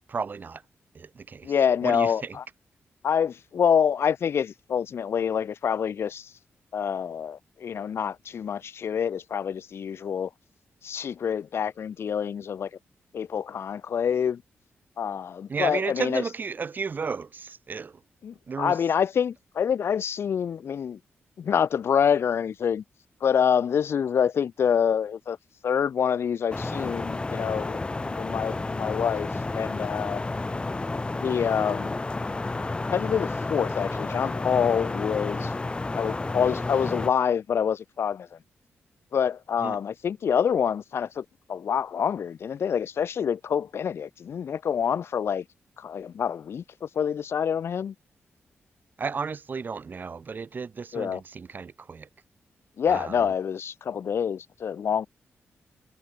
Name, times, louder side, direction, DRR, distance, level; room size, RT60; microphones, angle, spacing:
voice 1, 0.1-0.6 0.9-1.5 1.8-2.4 15.5-18.0 18.5-18.8 39.6-39.8 49.0-52.1 52.9-53.2, right 5 dB, 45° right, 4.2 m, -33 dB
voice 2, 1.4-2.4 3.0-6.3 6.7-10.3 10.8-12.7 13.1-14.4 15.0-16.2 18.2-21.0 21.4-22.8 23.2-25.4 25.6-30.2 31.1-32.0 32.9-35.5 35.9-38.4 39.1-45.4 45.8-47.9 50.9-51.2 52.8-55.1, left 7 dB, 70° left, 3.0 m, -26 dB
sound 1, 26.5-37.1, left 3 dB, 25° left, 5.4 m, -31 dB
wide cardioid pair, 115°, 4 cm